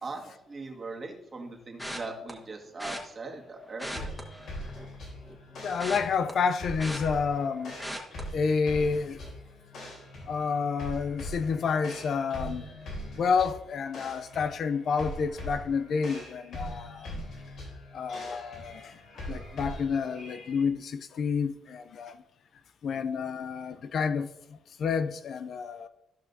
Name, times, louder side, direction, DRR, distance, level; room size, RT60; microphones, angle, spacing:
voice 1, 0.0-4.1 23.0-23.1, right 3 dB, 35° right, 1.7 m, -40 dB
sound 1, 1.8-2.3 2.8-3.0 3.7-4.9 5.3-7.5 7.8-8.2 8.7-8.9 9.2-9.3, equal, 5° left, 1.4 m, -39 dB
sound 2, 3.9-20.6, equal, 75° left, 3.3 m, -42 dB
voice 2, 5.6-7.8 8.3-9.2 10.3-12.6 13.2-17.2 17.9-22.2 22.8-24.3 24.8-25.9, left 5 dB, 60° left, 0.4 m, -29 dB
14.0 x 5.6 x 2.7 m
cardioid pair, 90°, 0 cm